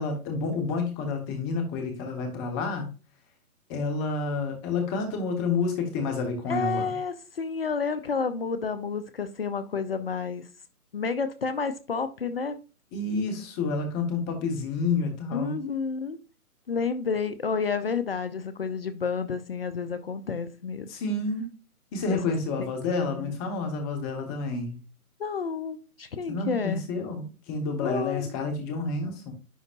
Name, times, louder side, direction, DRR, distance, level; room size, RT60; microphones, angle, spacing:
voice 1, 0.0-2.9 3.7-6.9 12.9-15.5 20.9-21.5 21.9-24.8 26.3-29.3, left 3 dB, 15° left, 1.1 m, -29 dB
voice 2, 6.5-10.4 10.9-12.6 15.3-16.2 16.7-20.9 22.1-22.2 22.9-23.3 25.2-26.8 27.8-28.2, left 5 dB, 40° left, 0.6 m, -30 dB
10.0 x 3.9 x 2.5 m
figure-of-eight pair, 145°, 45 cm